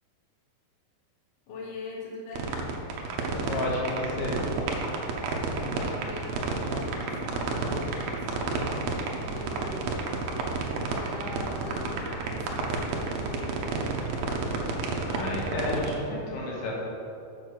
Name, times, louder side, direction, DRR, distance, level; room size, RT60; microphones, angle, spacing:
voice 1, 1.5-2.6 5.6-10.1 10.9-13.6, left 2 dB, 60° left, -4 dB, 3.0 m, -42 dB
sound 1, 2.3-16.0, right 4 dB, 80° right, 2.6 m, -30 dB
voice 2, 3.4-4.4 15.1-16.7, left 2 dB, 85° left, -4 dB, 3.7 m, -31 dB
7.5 x 6.2 x 6.5 m, 2.6 s
omnidirectional pair, 4.5 m